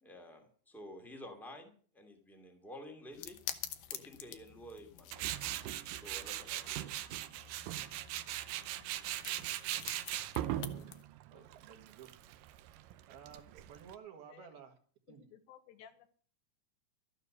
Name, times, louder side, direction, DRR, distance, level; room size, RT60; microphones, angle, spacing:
voice 1, 0.0-3.4 3.9-5.3 5.9-6.9, left 1 dB, ahead, 3 dB, 1.1 m, -51 dB
sound 1, 3.1-11.0, left 11 dB, 70° left, 2.5 m, -48 dB
Tools, 5.1-13.9, right 13 dB, 85° right, 1.9 m, -40 dB
voice 2, 10.4-11.0 11.3-12.1 13.1-14.7 15.1-15.2, right 8 dB, 65° right, 5 dB, 3.4 m, -53 dB
voice 3, 15.1-16.1, left 9 dB, 85° left, 8 dB, 3.5 m, -57 dB
13.0 x 9.8 x 6.7 m, 0.44 s
omnidirectional pair, 4.9 m